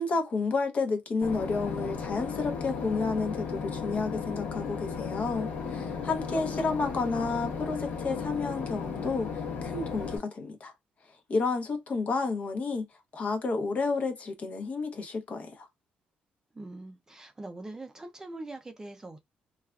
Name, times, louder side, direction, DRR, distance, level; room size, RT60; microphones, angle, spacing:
voice 1, 0.0-10.7 11.3-12.8 13.1-15.7, left 4 dB, 45° left, 0.8 m, -31 dB
Boat Water vehicle / Engine, 1.2-10.2, left 6 dB, 75° left, 0.9 m, -35 dB
voice 2, 6.0-6.6 6.9-7.1 16.5-19.2, right 2 dB, 20° right, 0.5 m, -43 dB
3.2 x 2.4 x 2.3 m
cardioid pair, 110°, 3 cm